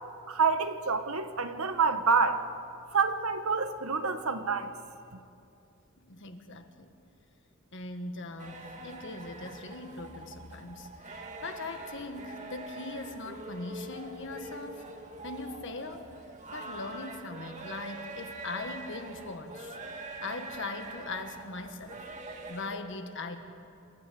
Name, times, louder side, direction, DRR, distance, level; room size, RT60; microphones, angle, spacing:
voice 1, 0.3-2.4 2.9-4.7, right 5 dB, 90° right, 9 dB, 1.3 m, -27 dB
voice 2, 6.0-6.9 7.7-14.9 15.2-16.1 16.5-19.8 20.2-22.1 22.5-23.4, left 3 dB, 60° left, 6 dB, 1.7 m, -40 dB
sound 1, 8.4-22.8, right 2 dB, 35° right, 1.8 m, -44 dB
27.5 x 13.0 x 8.6 m, 2.6 s
head